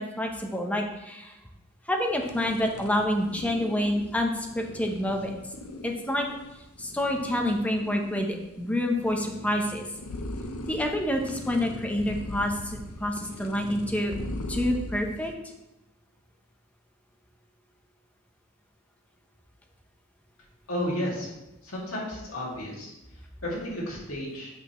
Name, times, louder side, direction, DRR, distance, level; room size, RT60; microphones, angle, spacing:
voice 1, 0.0-1.3 1.9-5.4 5.8-6.3 6.8-9.8 10.7-14.1 14.5-15.3, left 1 dB, 5° left, 2 dB, 0.7 m, -28 dB
sound 1, 2.0-15.4, left 1 dB, 85° left, 0.6 m, -40 dB
voice 2, 20.7-21.3 21.6-24.5, left 1 dB, 70° left, -4 dB, 2.2 m, -33 dB
7.8 x 5.0 x 3.1 m, 0.93 s
head